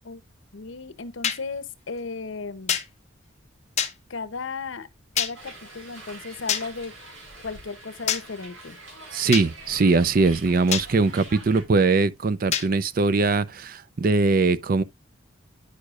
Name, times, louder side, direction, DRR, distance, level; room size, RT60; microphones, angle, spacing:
voice 1, 0.5-2.8 4.1-4.9 5.1-6.9 7.4-8.8, left 4 dB, 75° left, 0.7 m, -35 dB
sound 1, 1.2-1.4 2.7-2.9 3.8-3.9 5.2-5.3 6.5-6.6 8.1-8.2 9.3-9.5 10.7-10.9 12.5-12.7, left 9 dB, 35° left, 0.8 m, -25 dB
Hiss, 5.3-11.6, right 2 dB, 85° right, 4.1 m, -44 dB
voice 2, 9.1-14.8, right 3 dB, 45° right, 0.5 m, -21 dB
9.6 x 6.4 x 2.4 m
head